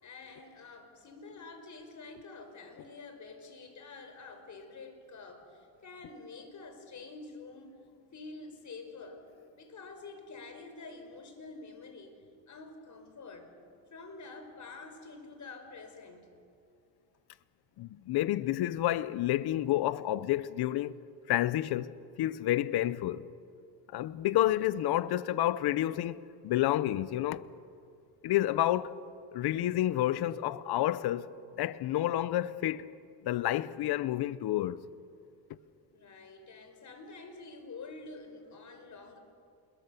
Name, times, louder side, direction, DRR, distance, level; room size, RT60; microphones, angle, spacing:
voice 1, 0.0-7.8 8.1-9.3 9.5-12.2 12.5-13.5 13.9-16.3 35.9-39.2, left 3 dB, 40° left, 4.8 m, -48 dB
voice 2, 17.8-21.0 21.3-23.3 23.9-27.4 28.2-29.0 29.3-31.3 31.6-32.9 33.2-34.8, left 14 dB, 55° left, 0.9 m, -29 dB
27.5 x 22.0 x 6.9 m
cardioid pair, 105°, 45 cm